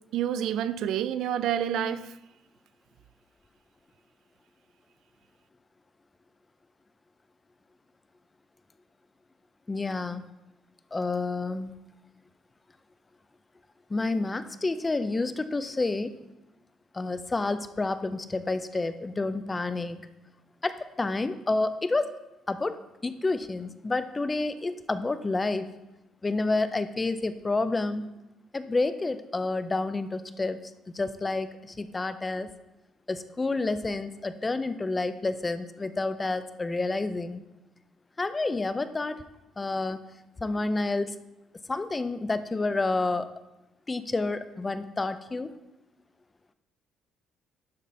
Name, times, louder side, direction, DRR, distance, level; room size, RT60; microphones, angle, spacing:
voice 1, 0.1-2.1, right 10 dB, 65° right, 0.3 m, -28 dB
voice 2, 9.7-10.2 10.9-11.7 13.9-16.2 16.9-20.0 20.6-22.2 22.5-22.8 23.0-25.7 26.2-28.1 28.5-30.6 30.9-32.5 33.1-37.4 38.2-39.2 39.6-40.0 40.4-41.2 41.7-43.3 43.9-45.5, left 3 dB, 15° left, 0.3 m, -29 dB
11.5 x 4.2 x 4.1 m
cardioid pair, 170°, 0 cm